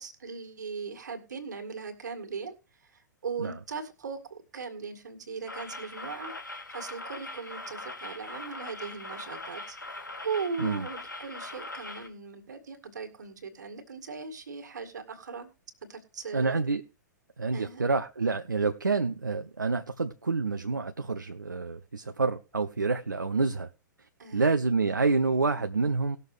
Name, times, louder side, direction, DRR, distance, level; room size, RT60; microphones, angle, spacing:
voice 1, 0.0-2.6 2.8-9.8 10.2-15.5 15.8-16.6 17.5-17.9 24.2-24.5, right 5 dB, 65° right, 2.1 m, -39 dB
sound 1, 5.5-12.1, left 2 dB, 80° left, 1.9 m, -41 dB
voice 2, 16.3-16.8 17.4-23.7 24.3-26.2, right 4 dB, 80° right, 0.7 m, -28 dB
19.0 x 6.7 x 3.3 m
figure-of-eight pair, 110°, 10 cm